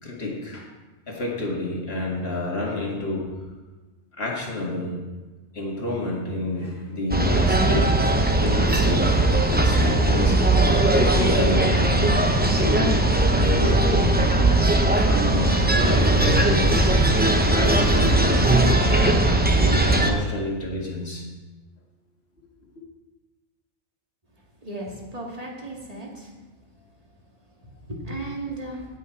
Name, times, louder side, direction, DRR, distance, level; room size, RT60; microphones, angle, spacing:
voice 1, 0.0-0.7 1.1-3.3 4.1-5.0 5.5-8.0 8.4-9.2 9.5-10.4 10.9-11.8 12.4-13.0 13.3-14.3 14.9-16.7 17.4-19.0 19.5-21.3, left 2 dB, 45° left, -1 dB, 2.2 m, -29 dB
sound 1, 7.1-20.1, right 2 dB, 10° right, 0.6 m, -19 dB
voice 2, 24.6-26.3 27.9-28.9, right 2 dB, 25° right, -1 dB, 2.0 m, -35 dB
17.5 x 6.4 x 4.5 m, 1.2 s
omnidirectional pair, 1.5 m